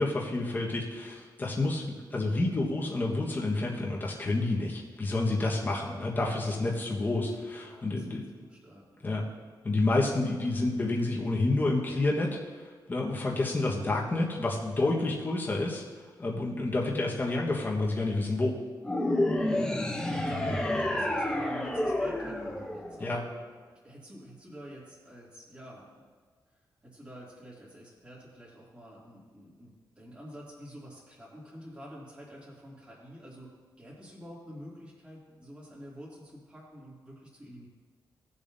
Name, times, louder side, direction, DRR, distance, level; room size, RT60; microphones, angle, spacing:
voice 1, 0.0-1.8 2.1-8.2 9.0-9.2 9.6-15.8 16.2-18.6 23.0-23.2, left 2 dB, 25° left, -2 dB, 1.3 m, -29 dB
voice 2, 7.5-9.1 13.7-13.9 19.3-23.3 23.8-26.1 26.8-33.5 33.8-37.7, equal, 15° right, -6 dB, 2.6 m, -47 dB
sound 1, 18.8-23.4, left 1 dB, 10° left, 0.8 m, -29 dB
18.0 x 7.0 x 2.7 m, 1.5 s
wide cardioid pair, 170°, 8 cm